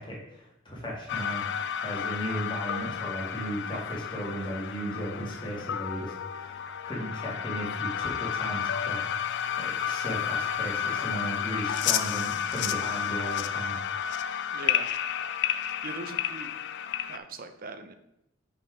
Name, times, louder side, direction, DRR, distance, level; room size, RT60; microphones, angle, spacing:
voice 1, 0.0-13.8, equal, 25° left, -4 dB, 2.0 m, -36 dB
sound 1, 1.1-17.2, left 9 dB, 60° left, 0.4 m, -31 dB
voice 2, 14.5-14.9 15.8-16.5 17.1-17.9, right 3 dB, 45° right, 9 dB, 0.6 m, -40 dB
6.7 x 4.0 x 4.9 m, 0.82 s
head